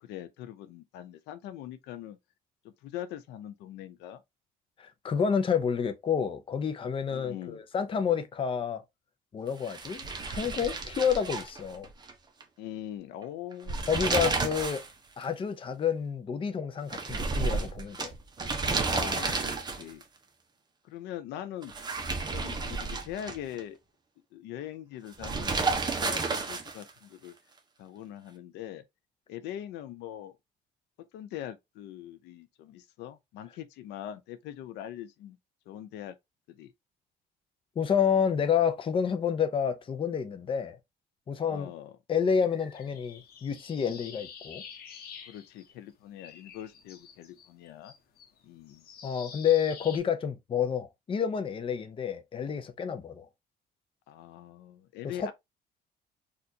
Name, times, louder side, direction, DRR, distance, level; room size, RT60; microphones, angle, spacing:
voice 1, 0.0-2.2 2.8-4.2 7.1-7.6 12.6-13.9 18.6-20.0 20.9-21.7 22.3-23.8 24.3-27.3 27.8-28.8 29.3-30.4 31.1-35.4 35.7-36.1 36.5-36.7 41.4-42.0 45.3-47.9 48.4-48.8 54.1-55.3, left 11 dB, 85° left, 0.6 m, -42 dB
voice 2, 4.8-8.8 9.3-11.9 13.9-14.8 15.2-18.1 37.8-40.8 41.3-41.7 42.1-44.6 49.0-53.3 55.2-55.3, left 7 dB, 30° left, 0.6 m, -29 dB
sound 1, 9.6-12.1 12.4-12.5 13.5-14.9 15.2-15.3 16.9-20.0 21.6-23.6 25.2-26.9, right 4 dB, 25° right, 0.9 m, -31 dB
sound 2, 42.5-45.9 46.2-50.0, left 7 dB, 65° left, 1.0 m, -48 dB
4.3 x 2.5 x 2.7 m
cardioid pair, 110°, 17 cm